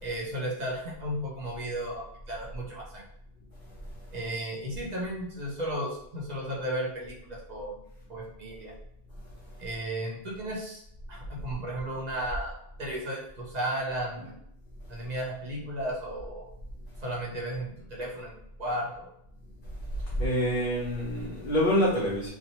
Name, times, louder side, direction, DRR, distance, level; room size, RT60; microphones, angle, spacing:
voice 1, 0.0-3.0 4.1-7.8 8.1-8.7 9.6-10.8 11.1-12.5 12.8-14.3 14.9-16.5 17.0-19.1, right 1 dB, 45° right, -3 dB, 0.7 m, -34 dB
voice 2, 20.0-22.3, equal, 55° left, -5 dB, 0.7 m, -26 dB
2.9 x 2.0 x 2.7 m, 0.74 s
omnidirectional pair, 1.1 m